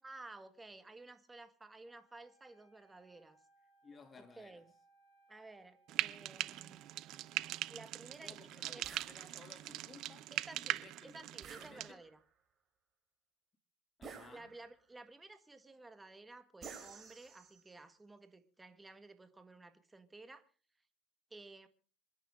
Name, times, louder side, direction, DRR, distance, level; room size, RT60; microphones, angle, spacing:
voice 1, 0.0-3.4 4.4-4.7 5.3-6.8 7.7-8.4 8.7-9.0 10.3-12.2 14.3-20.4 21.3-21.7, right 2 dB, 10° right, 1.8 m, -54 dB
Wind instrument woodwind instrument, 1.9-7.8, right 2 dB, 40° left, 6.5 m, -70 dB
voice 2, 3.8-4.6 8.2-11.3 11.5-12.0 14.0-14.5, left 4 dB, 20° left, 2.8 m, -58 dB
Frying (food), 5.9-11.9, right 15 dB, 50° right, 0.7 m, -41 dB
sound 1, 8.8-9.2 11.4-12.2 14.0-14.8 16.6-17.7, right 6 dB, 30° right, 3.4 m, -52 dB
27.0 x 10.5 x 3.8 m
supercardioid pair, 135°, 0 cm